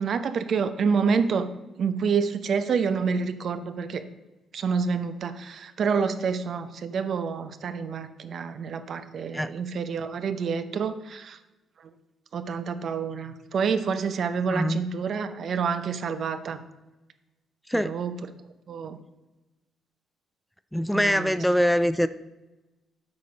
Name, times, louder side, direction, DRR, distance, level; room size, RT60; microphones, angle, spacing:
voice 1, 0.0-1.5 1.8-4.0 4.5-11.4 12.3-16.6 17.7-18.1 18.7-19.0 20.9-21.4, right 5 dB, 60° right, 11 dB, 0.7 m, -28 dB
voice 2, 14.5-14.8 17.7-17.9 20.7-22.1, equal, 5° left, 14 dB, 0.3 m, -23 dB
8.2 x 5.0 x 5.2 m, 1.1 s
cardioid pair, 90°, 0 cm